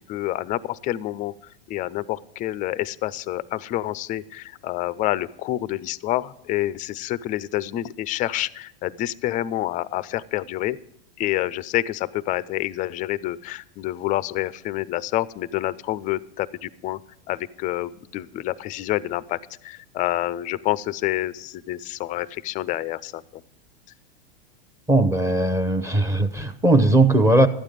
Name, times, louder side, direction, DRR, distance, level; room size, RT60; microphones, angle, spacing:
voice 1, 0.1-1.3 1.7-10.8 11.2-17.0 17.3-23.4, left 15 dB, 25° left, 19 dB, 0.4 m, -28 dB
voice 2, 24.9-27.5, right 2 dB, 10° right, 11 dB, 0.7 m, -18 dB
12.5 x 9.0 x 5.0 m, 0.82 s
hypercardioid pair, 120°, 30 cm